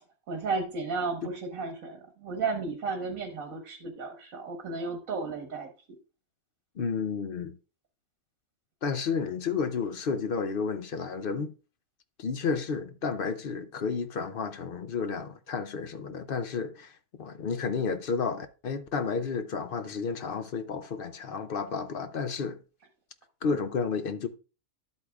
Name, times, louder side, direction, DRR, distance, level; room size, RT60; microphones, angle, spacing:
voice 1, 0.3-5.7, right 4 dB, 80° right, 1.8 m, -33 dB
voice 2, 6.8-7.5 8.8-11.5 12.2-16.9 17.2-22.6 23.4-24.3, left 5 dB, 55° left, 0.7 m, -31 dB
11.5 x 8.2 x 2.4 m
omnidirectional pair, 1.4 m